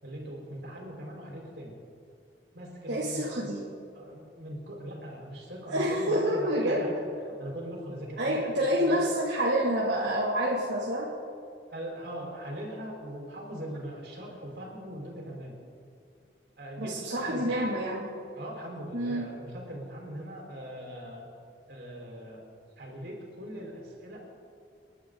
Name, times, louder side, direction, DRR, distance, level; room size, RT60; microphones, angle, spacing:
voice 1, 0.0-1.7 2.5-3.5 3.9-8.5 8.8-9.0 11.7-15.5 16.6-17.7 18.3-21.3 21.7-22.4 22.8-24.3, right 1 dB, 70° right, -2 dB, 4.7 m, -40 dB
voice 2, 2.9-3.6 5.7-6.8 8.2-11.1 16.8-18.1 18.9-19.2, equal, 85° right, -6 dB, 2.5 m, -28 dB
29.0 x 11.5 x 4.0 m, 2.4 s
head